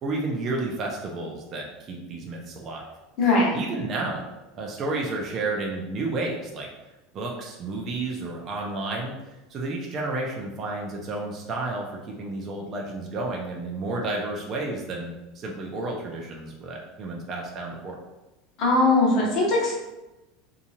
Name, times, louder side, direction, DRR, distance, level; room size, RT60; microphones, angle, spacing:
voice 1, 0.0-2.8 3.5-4.2 4.5-6.7 7.1-9.1 9.5-18.0, right 2 dB, 30° right, -1 dB, 0.4 m, -31 dB
voice 2, 3.2-3.5 18.6-19.7, left 2 dB, 45° left, -4 dB, 1.0 m, -20 dB
2.8 x 2.3 x 2.7 m, 1.0 s
supercardioid pair, 155°, 0 cm